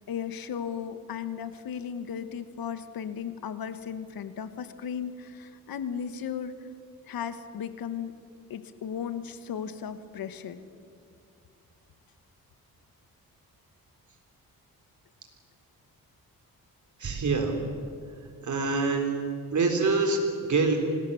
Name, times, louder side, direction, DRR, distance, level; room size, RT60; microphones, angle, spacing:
voice 1, 0.1-6.5 7.1-8.1 8.5-10.6, left 8 dB, 75° left, 11 dB, 1.4 m, -35 dB
voice 2, 17.0-17.5 18.4-19.2 19.5-20.2 20.5-20.8, right 4 dB, 55° right, 3 dB, 4.2 m, -25 dB
25.0 x 19.5 x 7.1 m, 2.3 s
cardioid pair, 100°, 36 cm